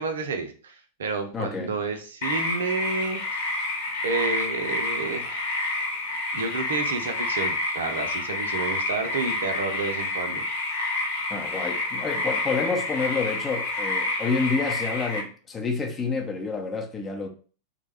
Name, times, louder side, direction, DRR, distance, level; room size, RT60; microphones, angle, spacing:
voice 1, 0.0-3.6 4.0-5.4 5.7-6.0 6.3-10.4, right 4 dB, 65° right, 0.6 m, -30 dB
voice 2, 1.3-1.7 11.3-17.3, left 4 dB, 20° left, 0.7 m, -28 dB
sound 1, 2.2-15.2, left 2 dB, 55° left, 1.0 m, -29 dB
3.4 x 2.2 x 3.4 m
figure-of-eight pair, 90°, 0 cm